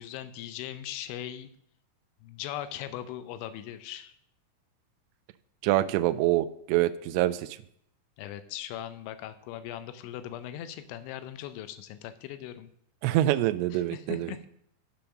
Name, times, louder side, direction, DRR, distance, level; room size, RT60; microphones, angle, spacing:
voice 1, 0.0-1.5 2.2-4.2 8.2-12.7 13.7-14.5, left 11 dB, 80° left, 11 dB, 2.9 m, -39 dB
voice 2, 5.6-7.5 13.0-14.3, right 14 dB, 90° right, 9 dB, 2.5 m, -25 dB
11.5 x 5.4 x 5.9 m, 0.71 s
omnidirectional pair, 5.6 m